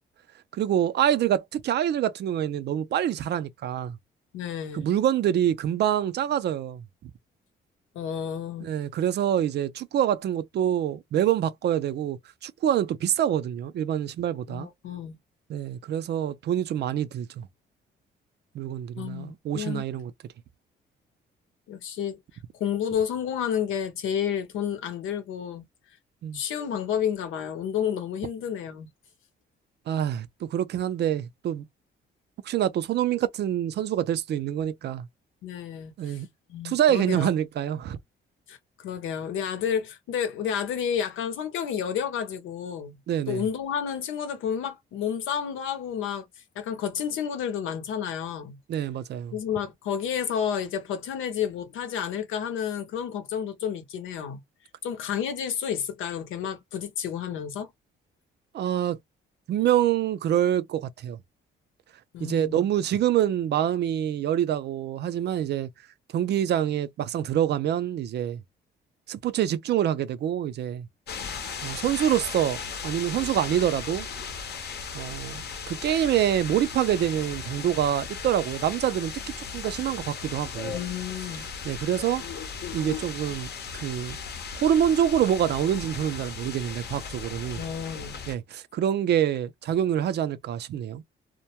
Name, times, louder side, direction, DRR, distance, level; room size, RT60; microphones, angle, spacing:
voice 1, 0.5-4.0 4.7-7.1 8.6-14.7 15.5-17.5 18.5-20.1 26.2-26.4 29.9-31.7 32.4-35.1 36.0-36.3 36.6-38.0 43.1-43.4 48.7-49.4 58.5-59.0 59.5-61.2 62.2-65.7 66.1-68.4 69.1-70.9 71.6-74.1 74.9-79.1 79.5-80.8 81.6-82.2 82.7-84.2 84.5-87.6 88.3-91.0, right 10 dB, 60° right, 0.4 m, -26 dB
voice 2, 4.3-4.9 7.9-8.7 14.5-15.2 19.0-19.8 21.7-22.2 22.5-25.6 26.3-28.9 35.4-36.2 36.5-37.3 38.5-42.9 43.3-46.3 46.6-48.6 49.3-54.4 54.8-57.7 62.1-62.7 80.7-81.5 87.5-88.1, left 8 dB, 90° left, 0.7 m, -30 dB
sound 1, 71.1-88.4, left 6 dB, 55° left, 0.7 m, -37 dB
2.2 x 2.1 x 2.8 m
cardioid pair, 90°, 20 cm